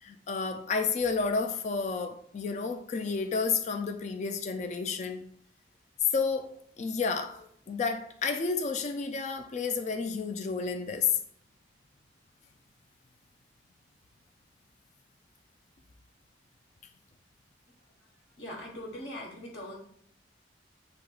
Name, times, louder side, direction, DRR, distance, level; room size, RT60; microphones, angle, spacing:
voice 1, 0.0-5.3 6.1-11.1, left 5 dB, 40° left, 0.3 m, -31 dB
voice 2, 18.4-19.8, left 1 dB, 65° left, 1.2 m, -41 dB
7.7 x 2.8 x 2.3 m
head